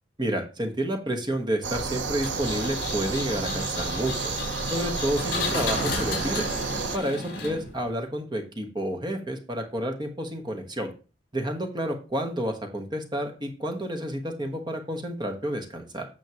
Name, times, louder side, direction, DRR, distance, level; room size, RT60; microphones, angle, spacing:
voice 1, 0.2-4.3 4.7-6.5 6.9-10.9 11.3-16.1, right 1 dB, 25° right, 5 dB, 1.2 m, -30 dB
sound 1, 1.6-7.0, right 4 dB, 75° right, 0.8 m, -31 dB
Engine, 2.2-7.9, left 3 dB, 60° left, 3.9 m, -33 dB
9.4 x 6.3 x 2.9 m, 0.34 s
head